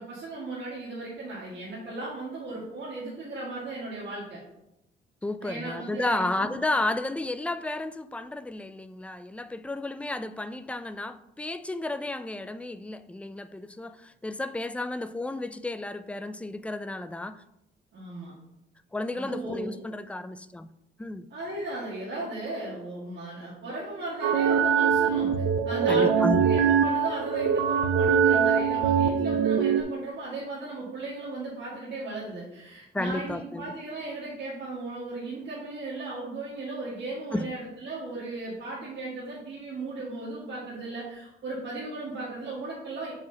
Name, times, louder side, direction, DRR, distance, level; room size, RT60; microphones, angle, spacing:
voice 1, 0.0-4.4 5.4-6.5 17.9-18.3 19.1-19.8 21.3-25.3 25.6-43.1, right 2 dB, 60° right, 1.8 m, -36 dB
voice 2, 5.2-17.4 18.9-20.7 21.0-21.3 25.9-26.4 32.9-33.7 37.3-37.5, left 2 dB, 5° left, 0.3 m, -32 dB
sound 1, 24.2-29.8, right 7 dB, 85° right, 0.5 m, -23 dB
7.1 x 4.9 x 2.8 m
cardioid pair, 90°, 20 cm